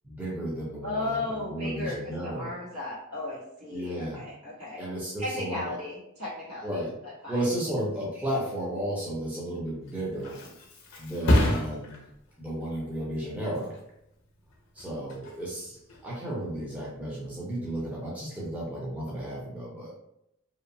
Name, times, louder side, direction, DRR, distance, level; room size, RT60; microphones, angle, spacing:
voice 1, 0.0-2.5 3.7-4.2 4.8-5.8 6.6-7.0 7.3-10.4 11.0-12.0 12.4-13.8 14.7-19.9, right 1 dB, 5° right, -6 dB, 0.5 m, -33 dB
voice 2, 0.8-4.8 5.2-7.4, left 2 dB, 75° right, -6 dB, 1.2 m, -35 dB
Thump thud, 9.7-17.1 17.6-18.0, left 1 dB, 55° left, 0.6 m, -31 dB
2.8 x 2.0 x 2.6 m, 0.79 s
head